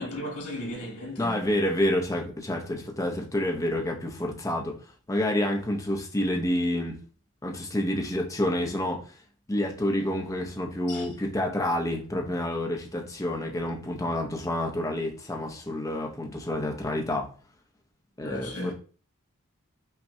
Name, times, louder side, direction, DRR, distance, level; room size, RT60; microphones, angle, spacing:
voice 1, 0.0-1.4 10.9-11.1 18.2-18.7, left 1 dB, 90° left, 1.5 m, -35 dB
voice 2, 1.2-4.8 5.1-7.0 7.4-9.1 9.5-17.3 18.2-18.7, left 1 dB, 15° left, 0.6 m, -28 dB
5.5 x 2.2 x 2.6 m
head